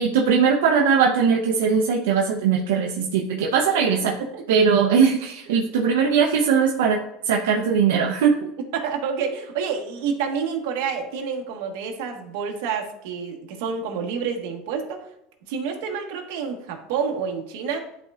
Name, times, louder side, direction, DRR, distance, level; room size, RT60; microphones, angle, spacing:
voice 1, 0.0-4.2 4.5-7.0 7.2-8.5, right 6 dB, 90° right, 0 dB, 0.8 m, -20 dB
voice 2, 8.7-15.1 15.5-17.8, right 6 dB, 75° right, 3 dB, 1.4 m, -28 dB
11.0 x 4.5 x 2.5 m, 0.80 s
supercardioid pair, 130°, 0 cm